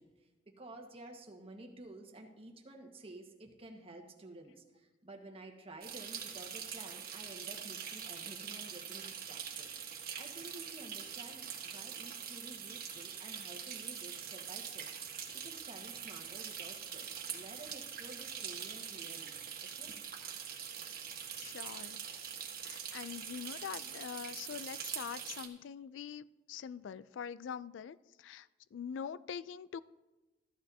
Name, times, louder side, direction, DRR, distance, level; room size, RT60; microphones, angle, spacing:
voice 1, 0.0-9.7 10.1-14.9 15.3-19.3 19.6-19.9, right 2 dB, 30° right, 2 dB, 1.4 m, -52 dB
sound 1, 5.8-25.5, right 8 dB, 55° right, 1.5 m, -44 dB
voice 2, 21.4-22.0 22.6-29.8, left 7 dB, 85° left, 17 dB, 0.3 m, -44 dB
14.5 x 12.0 x 2.7 m, 1.1 s
head